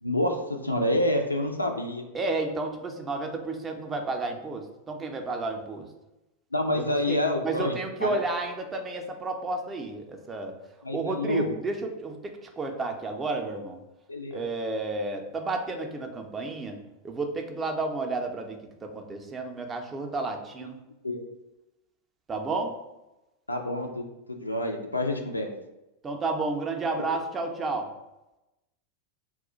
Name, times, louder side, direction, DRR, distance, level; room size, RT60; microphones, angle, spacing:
voice 1, 0.0-0.4 0.6-2.1 6.5-8.1 10.8-11.5 14.1-14.4 21.0-21.2 23.5-25.5 27.0-27.2, left 1 dB, 85° left, 3 dB, 0.3 m, -28 dB
voice 2, 2.1-5.9 6.7-10.5 10.9-13.8 14.3-16.8 17.0-20.8 22.3-22.7 26.0-27.9, right 3 dB, 20° right, 4 dB, 0.4 m, -31 dB
2.3 x 2.1 x 3.7 m, 0.95 s
figure-of-eight pair, 90°, 0 cm